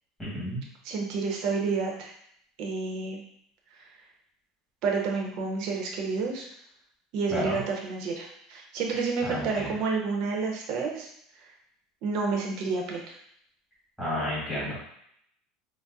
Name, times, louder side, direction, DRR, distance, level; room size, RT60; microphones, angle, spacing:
voice 1, 0.2-0.6 7.3-7.6 9.3-9.7 14.0-14.9, equal, 5° left, -11 dB, 1.2 m, -31 dB
voice 2, 0.8-2.1 2.6-3.2 4.8-6.5 7.1-11.1 12.0-13.2, right 4 dB, 55° right, 0 dB, 0.7 m, -29 dB
4.0 x 2.0 x 2.3 m, 0.70 s
cardioid pair, 150°, 0 cm